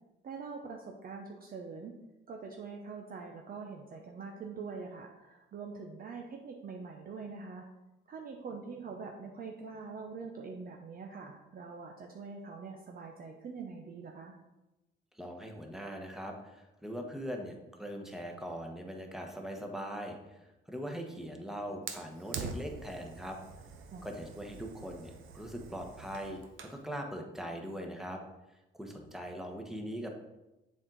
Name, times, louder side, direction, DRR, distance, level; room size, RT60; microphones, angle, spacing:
voice 1, 0.2-2.0 2.3-7.7 8.1-14.4 23.9-24.1, right 4 dB, 50° right, 1 dB, 0.7 m, -44 dB
voice 2, 15.1-20.4 20.7-23.4 24.0-28.2 28.7-30.1, equal, ahead, 2 dB, 1.1 m, -41 dB
Fire, 21.9-26.8, right 5 dB, 85° right, 0.7 m, -45 dB
7.3 x 4.5 x 3.9 m, 1.0 s
cardioid pair, 90°, 20 cm